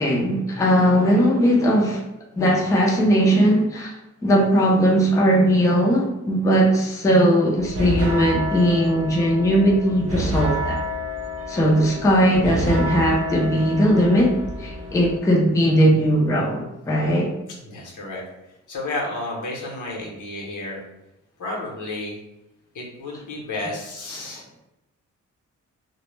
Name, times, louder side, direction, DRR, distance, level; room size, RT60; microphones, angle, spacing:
voice 1, 0.0-2.0 2.4-3.9 4.2-10.8 11.5-17.3, equal, 10° left, -3 dB, 0.3 m, -19 dB
sound 1, 7.6-15.2, equal, 55° right, 0.4 m, -29 dB
voice 2, 17.5-18.2 18.7-20.8 21.4-22.2 22.7-24.4, left 2 dB, 85° left, -2 dB, 0.7 m, -31 dB
2.1 x 2.0 x 3.0 m, 0.91 s
wide cardioid pair, 145°, 30 cm